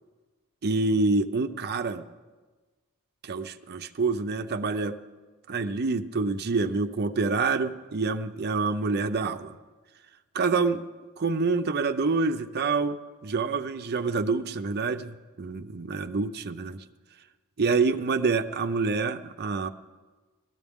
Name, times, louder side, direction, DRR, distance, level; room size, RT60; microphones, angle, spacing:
voice 1, 0.6-2.0 3.2-5.0 5.5-9.5 10.3-10.8 11.2-16.8 17.6-19.7, right 4 dB, 45° right, 8 dB, 0.6 m, -27 dB
19.0 x 13.5 x 3.6 m, 1.3 s
head